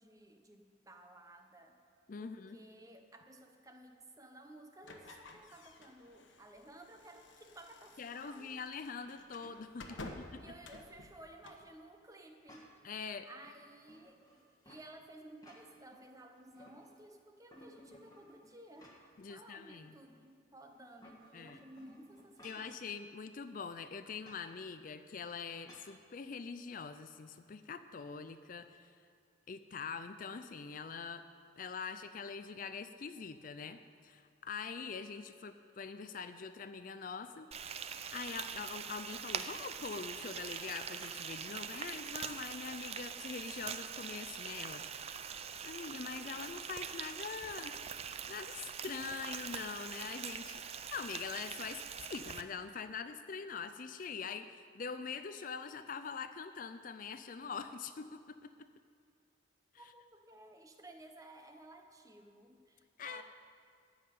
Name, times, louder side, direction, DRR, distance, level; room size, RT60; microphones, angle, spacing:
voice 1, 0.0-1.8 2.2-8.6 9.9-12.7 13.2-14.2 14.6-18.9 19.3-22.8 59.8-63.2, right 1 dB, 15° right, 5 dB, 0.9 m, -55 dB
voice 2, 2.1-2.6 8.0-10.0 10.3-10.4 12.8-13.3 19.2-20.0 21.3-21.6 22.4-28.9 29.5-31.3 31.6-37.5 38.1-44.8 45.6-47.7 48.3-50.6 50.9-58.5 59.8-59.9 63.0-63.2, left 5 dB, 45° left, 10 dB, 0.4 m, -44 dB
sound 1, 4.8-11.7, left 2 dB, 75° left, 1.1 m, -53 dB
sound 2, 12.5-12.9 13.4-14.9 15.3-16.0 16.3-17.1 17.5-19.3 19.7-19.8 20.8-22.8 24.2-24.5 25.7-26.0, equal, 20° left, 1.4 m, -59 dB
Frying (food), 37.5-52.4, right 7 dB, 35° right, 0.4 m, -43 dB
14.5 x 5.7 x 9.2 m, 2.2 s
head